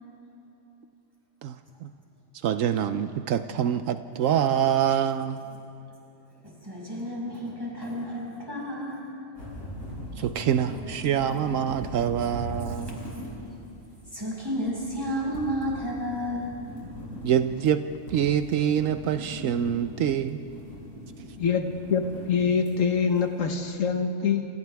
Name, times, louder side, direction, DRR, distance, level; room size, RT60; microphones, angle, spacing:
voice 1, 2.4-5.4 10.2-13.0 17.2-17.8 18.1-20.4, right 9 dB, 80° right, 10 dB, 1.0 m, -25 dB
voice 2, 6.6-9.0 12.7-12.9 13.3-13.5 14.1-16.5, equal, 15° right, -4 dB, 5.9 m, -32 dB
sound 1, 9.4-23.6, equal, 90° left, 7.7 m, -41 dB
voice 3, 21.4-24.4, left 6 dB, 75° left, 6 dB, 1.5 m, -25 dB
28.5 x 28.0 x 3.5 m, 2.7 s
omnidirectional pair, 1.4 m